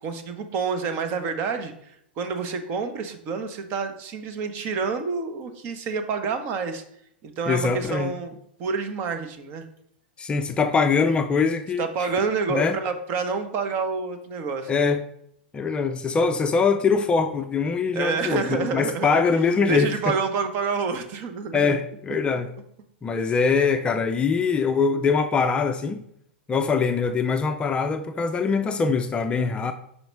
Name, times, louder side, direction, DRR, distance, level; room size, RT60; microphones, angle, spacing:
voice 1, 0.0-6.8 7.2-9.6 11.8-14.9 17.9-19.4 19.7-21.7, right 5 dB, 40° right, 0.9 m, -28 dB
voice 2, 7.5-8.1 10.2-11.9 12.5-12.8 14.7-15.0 15.5-20.1 21.5-22.5 23.0-26.0 26.5-29.7, left 5 dB, 20° left, 0.4 m, -23 dB
5.5 x 4.0 x 4.6 m
figure-of-eight pair, 100°, 6 cm